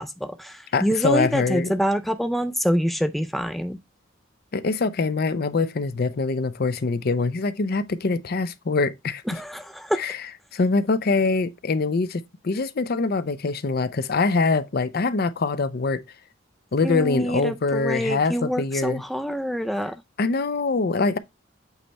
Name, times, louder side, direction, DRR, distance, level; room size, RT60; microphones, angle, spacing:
voice 1, 0.0-3.8 9.3-10.1 16.8-20.0, equal, ahead, 0.4 m, -26 dB
voice 2, 0.7-1.7 4.5-9.2 10.0-10.2 10.5-16.0 16.7-19.0 20.2-21.2, left 3 dB, 50° left, 0.6 m, -24 dB
8.1 x 3.4 x 4.1 m
head